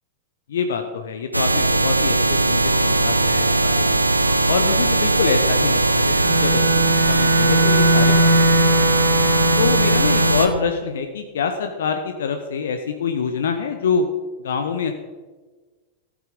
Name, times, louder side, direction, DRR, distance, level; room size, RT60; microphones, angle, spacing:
voice 1, 0.5-4.0 4.5-6.6 7.1-8.9 9.6-14.1 14.4-14.9, left 5 dB, 65° left, 6 dB, 0.8 m, -25 dB
sound 1, 1.3-10.5, right 2 dB, 85° right, 0.6 m, -19 dB
sound 2, 2.6-9.6, left 1 dB, 85° left, 3.3 m, -37 dB
Bowed string instrument, 6.2-10.7, equal, 30° right, 3.4 m, -20 dB
14.5 x 7.3 x 5.1 m, 1.3 s
figure-of-eight pair, 95°, 0 cm